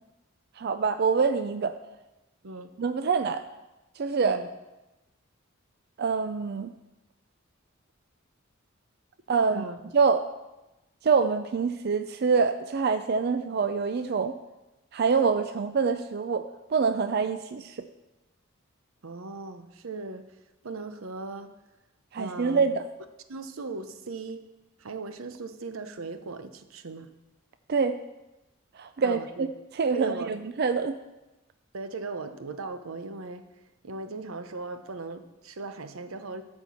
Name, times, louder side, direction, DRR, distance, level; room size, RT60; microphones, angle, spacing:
voice 1, 0.6-1.7 2.8-3.4 4.0-4.4 6.0-6.7 9.3-9.6 9.9-10.3 11.0-14.3 14.9-17.8 22.1-22.8 27.7-28.0 28.8-29.5 29.8-30.9, right 5 dB, 50° right, 9 dB, 0.4 m, -25 dB
voice 2, 19.0-20.3 20.6-21.5 22.2-22.7 23.3-24.5 24.8-27.1 29.0-29.5 29.9-30.3 31.7-33.5 33.8-36.4, right 3 dB, 90° right, 9 dB, 0.8 m, -38 dB
13.0 x 4.5 x 7.0 m, 1.0 s
head